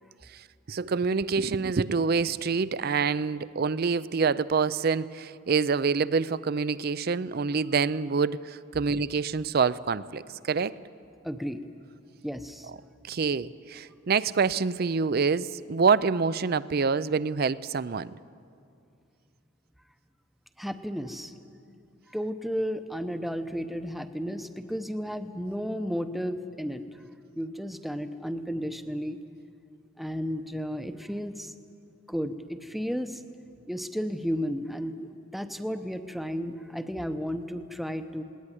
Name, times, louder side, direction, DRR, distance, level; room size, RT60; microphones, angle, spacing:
voice 1, 0.3-10.7 13.1-18.1, right 5 dB, 50° right, 17 dB, 0.5 m, -26 dB
voice 2, 11.2-11.6 12.2-12.7 20.6-21.3 22.1-26.8 27.3-29.2 30.0-31.5 32.1-33.2 33.7-38.2, equal, ahead, 8 dB, 0.8 m, -33 dB
19.5 x 18.5 x 9.9 m, 2.5 s
head